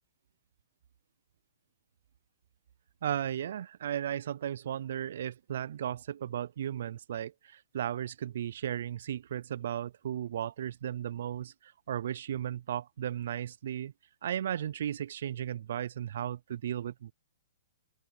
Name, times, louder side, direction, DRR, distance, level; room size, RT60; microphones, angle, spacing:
voice 1, 3.0-13.9 14.2-17.1, right 10 dB, 50° right, 0.3 m, -35 dB
open air
hypercardioid pair, 175°, 0 cm